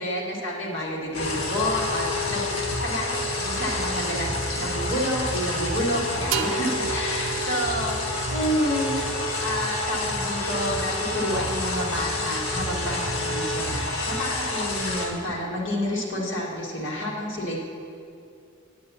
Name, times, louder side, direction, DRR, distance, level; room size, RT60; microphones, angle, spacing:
voice 1, 0.0-2.6 2.8-9.0 9.4-17.6, equal, 60° left, -3 dB, 1.7 m, -29 dB
sound 1, 1.1-15.1, left 1 dB, 80° left, 1.3 m, -28 dB
sound 2, 6.3-9.9, right 7 dB, 90° right, 0.5 m, -34 dB
9.2 x 8.2 x 4.1 m, 2.5 s
head